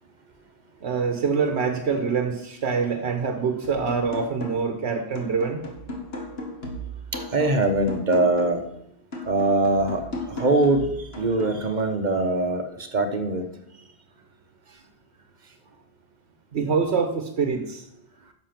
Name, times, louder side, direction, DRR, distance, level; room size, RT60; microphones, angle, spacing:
voice 1, 0.8-5.6 16.5-17.9, right 5 dB, 85° right, 5 dB, 1.2 m, -25 dB
sound 1, 3.6-4.8 5.2-8.7 9.1-11.6, left 1 dB, 70° left, 2.0 m, -36 dB
voice 2, 7.1-8.6 9.2-13.5, right 2 dB, 45° right, 6 dB, 1.0 m, -23 dB
10.5 x 6.6 x 5.9 m, 0.77 s
omnidirectional pair, 1.1 m